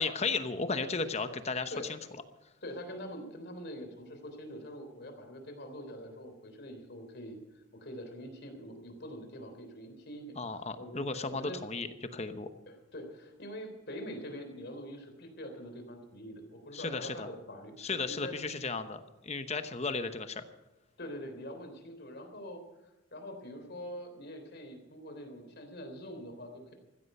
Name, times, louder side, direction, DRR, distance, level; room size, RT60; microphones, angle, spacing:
voice 1, 0.0-2.0 10.4-12.5 16.7-17.3 17.8-20.4, left 4 dB, 30° left, 10 dB, 0.9 m, -35 dB
voice 2, 2.6-11.6 12.7-18.3 21.0-22.6 23.1-26.7, equal, 50° left, 6 dB, 3.4 m, -44 dB
15.5 x 13.5 x 5.6 m, 1.1 s
head